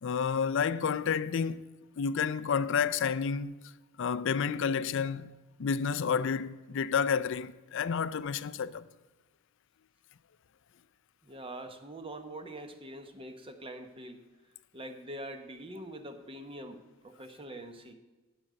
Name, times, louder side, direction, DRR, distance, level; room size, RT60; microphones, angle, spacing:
voice 1, 0.0-1.6 2.0-3.6 4.0-5.3 5.6-8.9, left 6 dB, 60° left, 0.4 m, -30 dB
voice 2, 11.2-14.2 14.7-17.9, right 1 dB, 25° right, 1.0 m, -44 dB
8.5 x 8.1 x 7.6 m
head